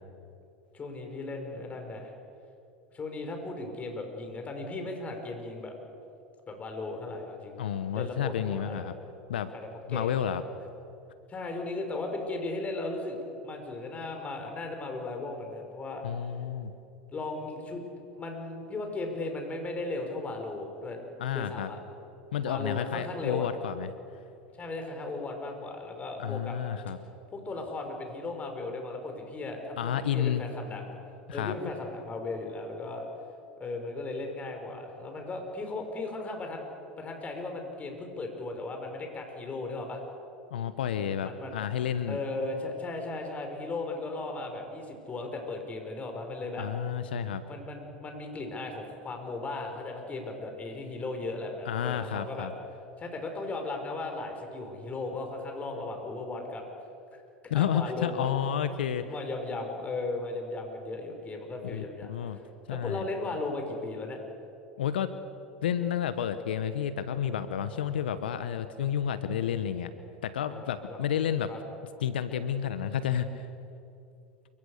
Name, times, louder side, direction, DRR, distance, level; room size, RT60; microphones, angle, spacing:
voice 1, 0.7-2.1 2.9-5.7 6.5-7.6 7.9-8.8 9.5-10.2 11.3-16.0 17.1-17.8 18.1-21.0 21.3-21.8 22.4-23.5 24.6-26.6 27.3-30.9 31.3-33.1 33.6-36.6 37.0-40.0 41.2-41.6 42.1-46.7 47.5-52.5 53.0-56.6 57.5-58.3 58.7-62.4 62.7-64.2 70.5-71.0 71.5-71.6, left 2 dB, 25° left, 4 dB, 5.8 m, -36 dB
voice 2, 7.6-8.9 9.3-9.5 9.9-10.4 16.0-16.7 21.2-21.7 22.3-23.9 26.2-27.0 29.8-30.4 31.3-31.6 40.5-42.2 46.6-47.4 51.6-52.5 57.5-59.0 61.6-62.4 62.7-63.0 64.8-65.1 65.6-69.9 70.2-71.5 72.0-73.5, left 9 dB, 80° left, 11 dB, 1.2 m, -30 dB
28.5 x 25.0 x 6.7 m, 2.7 s
hypercardioid pair, 85°, 5 cm